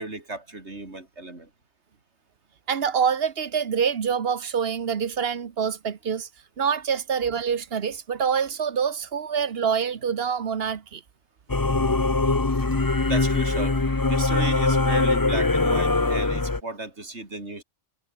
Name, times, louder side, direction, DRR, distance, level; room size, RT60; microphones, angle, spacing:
voice 1, 0.0-1.5 13.1-13.8 14.1-17.6, right 2 dB, 80° right, 4.6 m, -34 dB
voice 2, 2.7-6.3 6.6-11.0, right 7 dB, 60° right, 1.3 m, -26 dB
Singing / Musical instrument, 11.5-16.6, left 3 dB, 20° left, 1.0 m, -22 dB
omnidirectional pair, 1.1 m